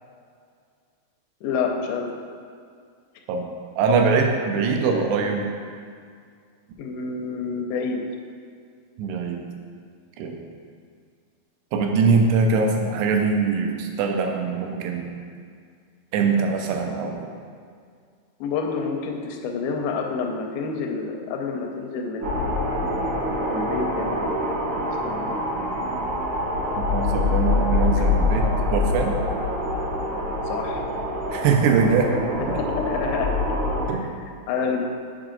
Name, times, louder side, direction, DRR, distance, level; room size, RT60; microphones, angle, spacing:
voice 1, 1.4-2.1 6.8-8.0 18.4-22.3 23.3-24.3 25.0-25.4 30.5-30.8 32.4-33.4 34.1-34.8, left 5 dB, 80° left, 2 dB, 2.3 m, -28 dB
voice 2, 3.8-5.5 9.0-9.4 10.2-10.4 11.7-15.2 16.1-17.3 26.8-29.2 31.3-32.1 32.5-32.6 33.9-34.1, right 5 dB, 90° right, 3 dB, 2.7 m, -22 dB
sound 1, 22.2-33.9, left 2 dB, 65° right, 1.8 m, -25 dB
6.5 x 4.8 x 3.8 m, 2.2 s
omnidirectional pair, 4.6 m